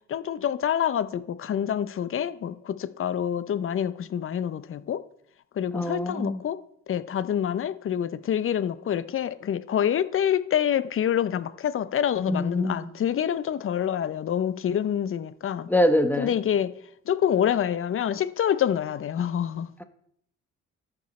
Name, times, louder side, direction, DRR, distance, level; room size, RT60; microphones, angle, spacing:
voice 1, 0.1-5.0 5.6-6.6 6.9-15.7 16.2-16.7 17.1-19.7, left 9 dB, 45° left, 0.6 m, -26 dB
voice 2, 5.7-6.4 12.3-12.9 15.7-16.3, left 1 dB, 5° left, 1.0 m, -24 dB
13.5 x 5.3 x 4.2 m
cardioid pair, 90°, 30 cm